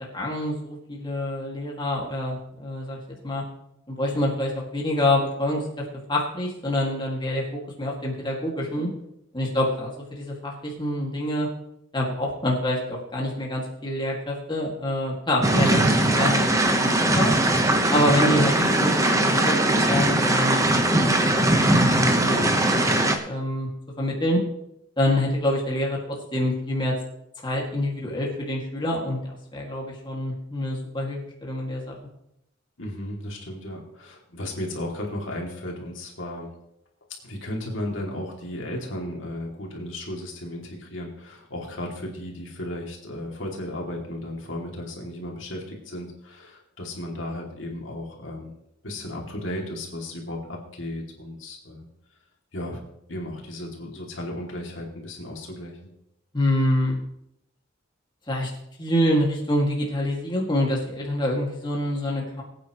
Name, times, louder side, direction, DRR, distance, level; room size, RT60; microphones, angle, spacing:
voice 1, 0.1-3.0 3.2-3.4 3.9-5.7 6.1-8.9 9.3-11.5 11.9-15.8 16.1-17.3 17.9-19.6 19.9-23.7 24.0-24.4 25.0-26.0 26.3-26.9 27.4-29.2 29.5-32.0 56.3-57.0 58.3-58.5 58.8-62.4, left 1 dB, 25° left, -2 dB, 2.3 m, -26 dB
sound 1, 15.4-23.2, right 1 dB, 15° right, 1.1 m, -20 dB
voice 2, 32.8-36.5 37.2-48.5 48.8-51.9 52.5-52.8 53.1-55.9, left 1 dB, 70° left, -1 dB, 2.7 m, -35 dB
21.5 x 9.1 x 3.1 m, 0.78 s
head